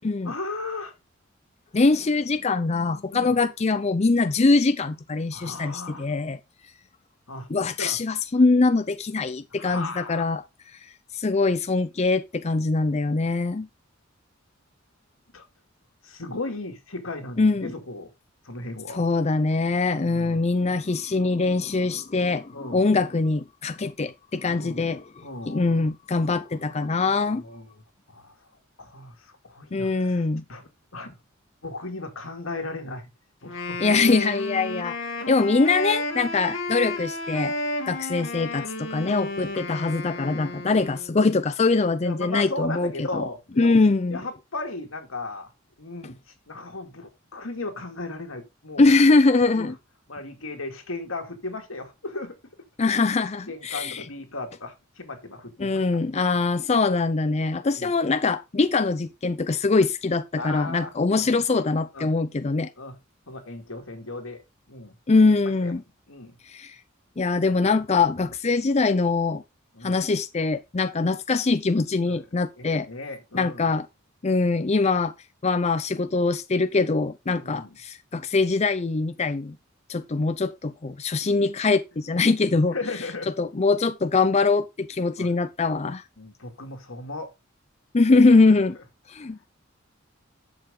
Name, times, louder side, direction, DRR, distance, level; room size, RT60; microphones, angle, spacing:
voice 1, 0.2-0.9 3.1-3.4 5.3-6.1 7.3-8.0 9.5-10.2 15.3-15.5 16.0-18.1 18.4-19.0 20.0-20.4 22.5-23.0 24.5-24.9 25.2-25.7 27.4-27.8 28.1-28.3 28.8-31.2 31.6-33.1 33.4-33.8 35.2-35.3 42.0-43.8 44.1-45.5 45.8-46.2 46.5-48.9 49.5-49.7 50.1-52.4 53.5-55.8 57.6-57.9 60.4-61.3 61.9-62.1 62.8-63.0 63.3-65.0 65.6-65.7 66.1-66.4 69.7-70.0 72.1-72.2 72.6-73.7 77.3-77.8 82.7-83.3 85.2-85.3 86.2-87.3, left 2 dB, 85° left, 2.4 m, -36 dB
voice 2, 1.7-6.4 7.5-10.4 11.1-13.7 17.4-17.7 18.9-27.4 29.7-30.4 33.8-35.0 35.3-37.5 37.9-43.2 43.6-44.2 48.8-49.7 52.8-54.0 55.6-62.7 65.1-65.8 66.5-66.8 67.2-69.4 69.8-72.9 73.3-73.9 74.2-75.1 75.4-79.6 79.9-82.7 83.4-86.0 87.9-88.8 89.1-89.4, left 3 dB, 35° left, 0.5 m, -23 dB
Wind instrument woodwind instrument, 33.4-41.2, left 2 dB, 65° left, 2.4 m, -32 dB
10.5 x 6.8 x 3.6 m
head